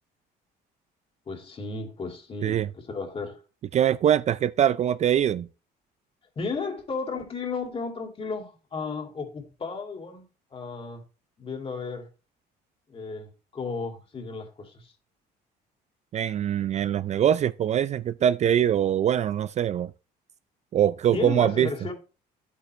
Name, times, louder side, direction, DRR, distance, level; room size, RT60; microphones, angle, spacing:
voice 1, 1.3-3.4 6.4-10.3 10.5-11.0 11.4-12.1 12.9-14.9 21.1-21.9, left 4 dB, 35° left, 2.5 m, -34 dB
voice 2, 3.7-5.5 16.1-19.9 20.7-21.7, right 10 dB, 40° right, 0.4 m, -23 dB
10.5 x 8.4 x 3.2 m
cardioid pair, 110°, 17 cm